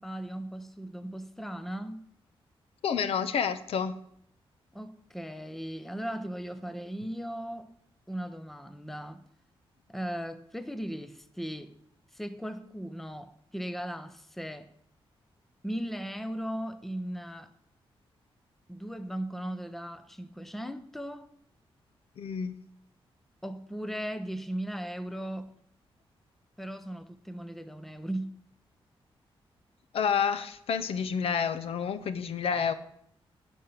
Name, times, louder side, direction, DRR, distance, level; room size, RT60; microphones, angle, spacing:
voice 1, 0.0-2.0 4.7-7.7 8.1-9.2 9.9-11.7 12.1-14.7 15.6-17.5 18.7-21.3 23.4-25.5 26.6-28.4, right 1 dB, 5° left, 0.6 m, -37 dB
voice 2, 2.8-3.9 22.2-22.6 29.9-32.7, left 7 dB, 80° left, 0.9 m, -29 dB
16.0 x 5.5 x 6.7 m
wide cardioid pair, 160°, 10 cm